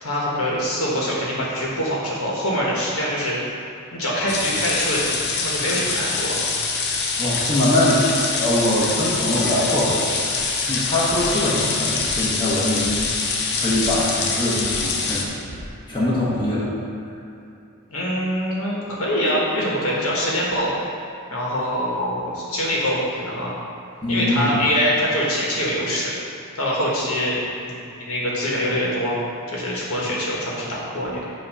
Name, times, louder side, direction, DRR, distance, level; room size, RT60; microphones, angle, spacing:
voice 1, 0.0-3.4 3.9-6.3 17.9-20.7 21.3-23.5 24.1-26.1 26.5-29.2 29.5-31.2, equal, 70° left, -5 dB, 1.4 m, -24 dB
sound 1, 4.3-15.2, left 4 dB, 50° left, 0.7 m, -24 dB
voice 2, 7.2-8.0 8.3-10.1 10.5-13.1 13.6-15.3 15.9-16.7 24.0-24.6, left 1 dB, 20° left, -8 dB, 1.1 m, -22 dB
sound 2, 10.4-15.7, right 1 dB, 45° right, 0.7 m, -40 dB
7.4 x 3.0 x 5.5 m, 2.7 s
head